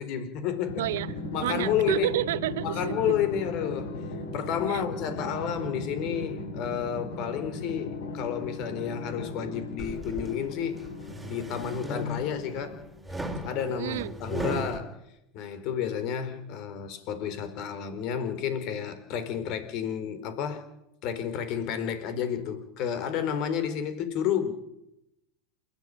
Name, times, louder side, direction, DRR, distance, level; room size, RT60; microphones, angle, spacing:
voice 1, 0.0-0.9 1.3-2.1 2.6-4.0 4.3-10.8 11.3-12.8 13.4-15.0 15.3-20.6 21.0-24.5, left 8 dB, 50° left, 4.5 m, -31 dB
Drum, 0.7-13.0, left 2 dB, 75° left, 8.0 m, -37 dB
voice 2, 0.8-3.2 4.7-4.9 13.7-14.1, right 14 dB, 70° right, 0.8 m, -30 dB
sound 1, 9.8-10.3 10.9-12.5 13.1-14.8, equal, 5° right, 4.2 m, -35 dB
28.0 x 12.5 x 9.3 m
hypercardioid pair, 95°, 0 cm